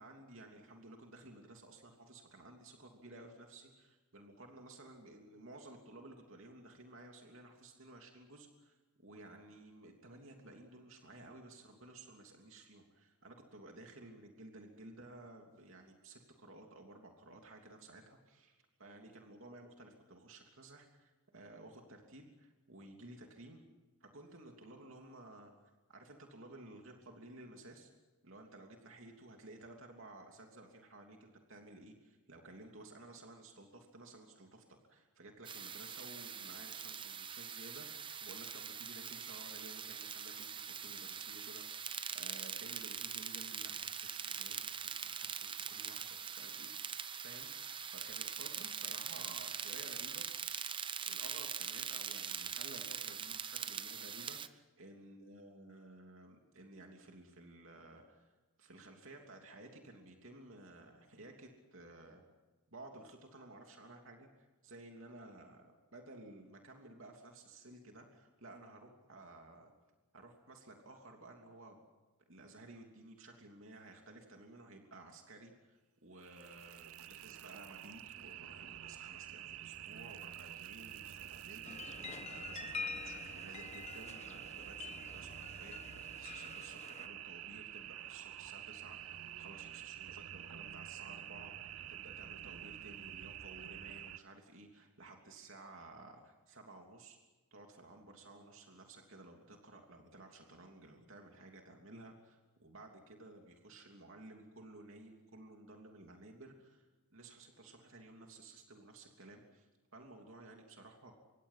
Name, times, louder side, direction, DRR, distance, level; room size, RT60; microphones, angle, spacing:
voice 1, 0.0-23.6 24.0-25.5 25.9-27.9 28.2-50.2 51.0-58.3 58.6-62.2 62.7-69.7 70.1-71.8 72.3-97.2 97.5-109.7 109.9-111.1, right 2 dB, 60° right, 2 dB, 3.1 m, -55 dB
sound 1, 35.4-54.5, right 7 dB, 20° right, 0.8 m, -42 dB
sound 2, 76.2-94.2, right 11 dB, 75° right, 0.7 m, -48 dB
sound 3, 81.6-87.1, left 5 dB, 30° left, 1.2 m, -47 dB
26.5 x 24.0 x 5.8 m, 1.2 s
head